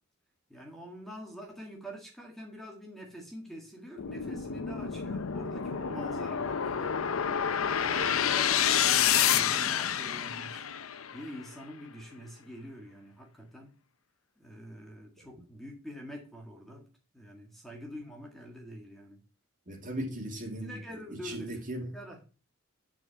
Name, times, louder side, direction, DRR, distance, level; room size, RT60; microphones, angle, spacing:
voice 1, 0.5-7.0 7.8-10.7 11.1-13.7 14.4-16.9 17.1-19.2 20.6-21.6 21.9-22.2, equal, ahead, 1.7 m, -45 dB
sound 1, 4.0-11.2, left 8 dB, 85° left, 0.7 m, -29 dB
voice 2, 19.7-20.8 21.1-21.9, right 1 dB, 40° right, 2.6 m, -37 dB
9.7 x 4.9 x 5.7 m
head